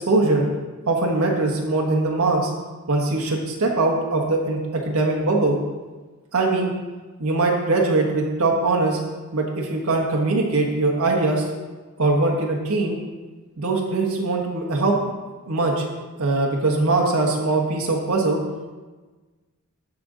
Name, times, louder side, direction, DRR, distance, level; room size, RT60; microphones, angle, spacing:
voice 1, 0.1-0.4 0.9-2.5 2.9-4.6 4.9-5.6 6.3-6.7 7.2-9.0 9.3-11.5 12.0-13.0 13.6-15.0 15.5-15.8 16.2-18.4, right 2 dB, 90° right, 0 dB, 1.3 m, -21 dB
13.5 x 5.2 x 3.9 m, 1.3 s
head